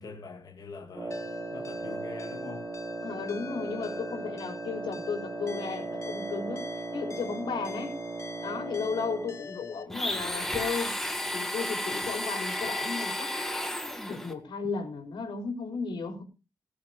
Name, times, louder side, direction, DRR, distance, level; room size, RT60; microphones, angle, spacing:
voice 1, 0.0-2.7, left 4 dB, 55° left, 2.6 m, -44 dB
Wind instrument woodwind instrument, 0.9-9.5, right 3 dB, 30° right, 2.9 m, -37 dB
sound 1, 1.1-9.8, left 5 dB, 40° left, 1.5 m, -46 dB
voice 2, 3.0-8.0 8.4-10.9 11.3-13.3 14.1-16.2, left 5 dB, 90° left, 4.8 m, -34 dB
Domestic sounds home sounds, 9.9-14.3, left 1 dB, 5° left, 2.0 m, -32 dB
19.5 x 7.7 x 5.3 m
wide cardioid pair, 155°, 8 cm